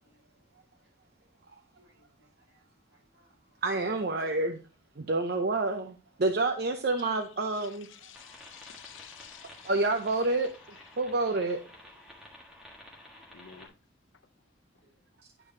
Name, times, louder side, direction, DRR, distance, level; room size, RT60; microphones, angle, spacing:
voice 1, 0.0-0.4 1.7-3.6 6.1-6.2 9.4-9.7 12.0-12.2 13.1-13.7 14.8-15.0, right 1 dB, 80° right, 4.6 m, -68 dB
voice 2, 3.6-4.6 5.0-7.9 9.6-10.5 11.0-11.6, right 2 dB, 55° right, 0.6 m, -28 dB
voice 3, 7.5-9.7 10.2-10.4 10.7-10.8 12.9-13.0 13.3-13.7, left 9 dB, 90° left, 0.7 m, -51 dB
sound 1, 8.1-13.7, left 1 dB, 5° right, 1.5 m, -52 dB
11.0 x 4.9 x 2.7 m
head